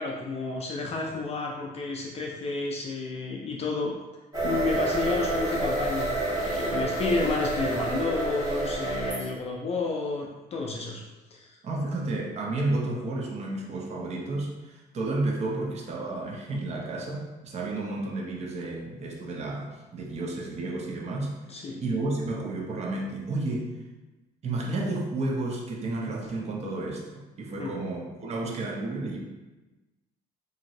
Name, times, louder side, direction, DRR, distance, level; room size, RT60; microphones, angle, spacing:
voice 1, 0.0-3.9 4.4-11.0 11.3-11.6 21.5-21.8 27.6-27.7, left 3 dB, 40° left, -1 dB, 0.4 m, -31 dB
sound 1, 4.3-9.3, right 2 dB, 20° right, 1.0 m, -28 dB
voice 2, 11.6-21.3 21.8-23.7 24.4-27.1 27.4-29.4, right 2 dB, 40° right, 0 dB, 0.6 m, -31 dB
3.0 x 2.6 x 2.6 m, 1.1 s
cardioid pair, 110°, 17 cm